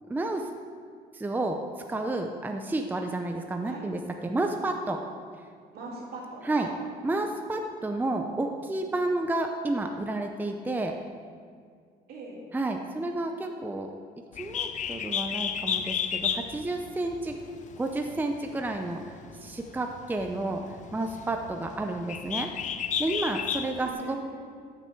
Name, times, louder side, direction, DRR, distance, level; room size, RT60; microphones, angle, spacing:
voice 1, 0.1-0.5 1.1-1.6 1.9-5.0 6.4-6.7 7.0-10.9 12.5-13.9 14.4-17.3 17.8-22.5 23.0-24.2, right 2 dB, 10° right, 4 dB, 0.6 m, -31 dB
voice 2, 5.7-6.7 12.1-12.4 23.8-24.4, right 2 dB, 65° right, -3 dB, 3.1 m, -41 dB
Bird, 14.3-23.9, left 8 dB, 45° left, 0.6 m, -33 dB
14.0 x 6.7 x 4.6 m, 2.1 s
cardioid pair, 110°, 17 cm